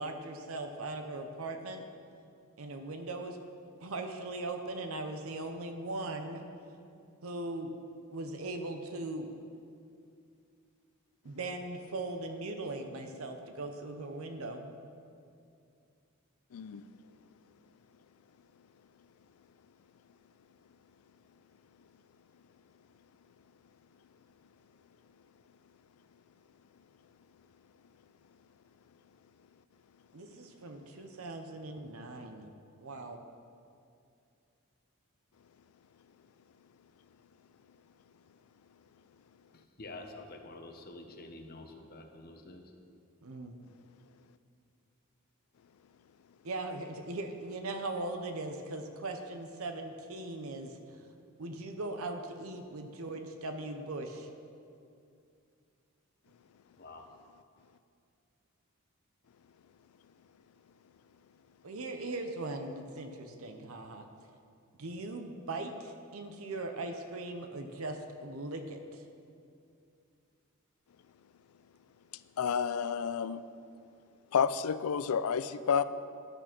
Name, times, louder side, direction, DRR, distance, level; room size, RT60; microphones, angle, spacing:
voice 1, 0.0-1.8 2.6-3.4 3.8-6.4 7.2-7.7 8.1-9.3 11.2-14.8 30.1-32.5 32.8-33.2 43.2-43.5 46.4-51.0 51.4-54.3 61.6-64.1 64.8-69.0, right 2 dB, 75° right, 5 dB, 0.7 m, -39 dB
voice 2, 16.5-16.8 72.4-73.4 74.3-75.8, left 7 dB, 85° left, 14 dB, 0.4 m, -30 dB
voice 3, 39.5-42.7 56.8-57.1, left 2 dB, 45° left, 4 dB, 0.9 m, -48 dB
11.0 x 6.7 x 5.9 m, 2.5 s
head